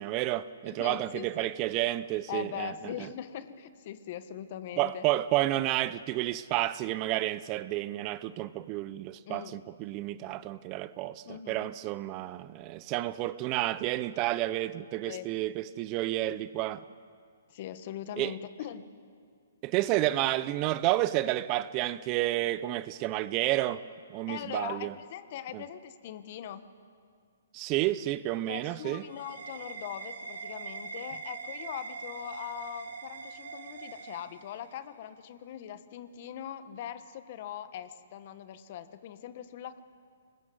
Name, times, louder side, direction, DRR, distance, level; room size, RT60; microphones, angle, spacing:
voice 1, 0.0-2.9 4.8-16.8 18.2-18.3 19.6-23.8 24.1-24.9 25.5-25.6 27.5-29.0, right 15 dB, 30° right, 0.6 m, -30 dB
voice 2, 0.6-1.6 2.3-5.0 9.3-9.6 11.2-11.7 15.1-15.3 17.5-18.9 24.3-26.6 28.5-39.8, left 10 dB, 45° left, 1.3 m, -41 dB
sound 1, 28.4-34.9, right 5 dB, 75° right, 2.3 m, -43 dB
26.0 x 20.5 x 7.9 m
hypercardioid pair, 140°, 0 cm